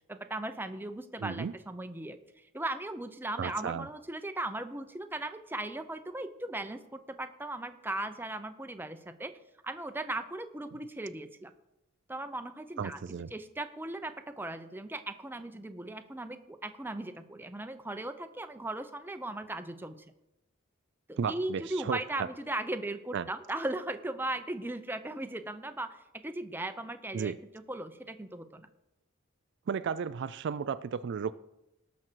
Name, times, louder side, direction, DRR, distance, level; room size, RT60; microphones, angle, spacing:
voice 1, 0.1-9.3 9.6-11.5 12.1-13.0 13.3-20.0 21.1-28.7, right 2 dB, 10° right, 8 dB, 0.6 m, -38 dB
voice 2, 1.2-1.5 3.4-3.9 12.8-13.3 21.2-22.3 23.1-23.3 27.1-27.4 29.7-31.3, right 6 dB, 55° right, 14 dB, 0.3 m, -34 dB
18.5 x 6.3 x 4.5 m, 0.90 s
head